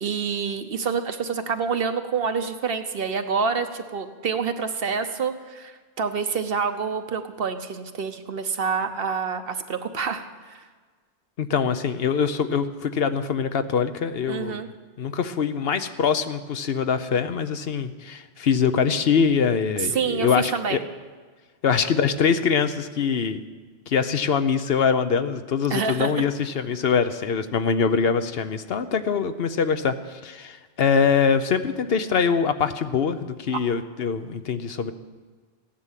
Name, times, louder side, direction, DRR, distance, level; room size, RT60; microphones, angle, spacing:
voice 1, 0.0-10.6 14.3-14.7 19.9-20.8 25.7-26.1, right 5 dB, 65° right, 8 dB, 1.2 m, -27 dB
voice 2, 11.4-14.6 15.0-20.8 21.6-23.4 23.9-34.9, left 6 dB, 70° left, 10 dB, 1.0 m, -23 dB
15.5 x 10.5 x 7.4 m, 1.4 s
omnidirectional pair, 1.0 m